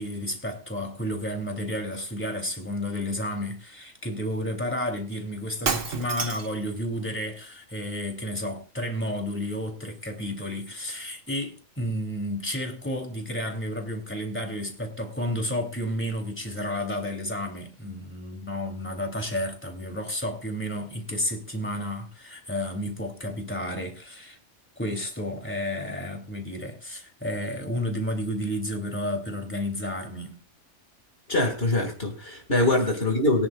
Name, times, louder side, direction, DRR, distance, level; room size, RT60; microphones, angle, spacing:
voice 1, 0.0-24.4 24.8-30.4 32.6-32.7, equal, 10° left, 2.9 m, -31 dB
Shatter, 5.6-6.6, right 5 dB, 60° right, 1.6 m, -29 dB
voice 2, 31.3-33.5, left 2 dB, 45° left, 2.3 m, -23 dB
22.5 x 10.5 x 2.4 m
omnidirectional pair, 1.5 m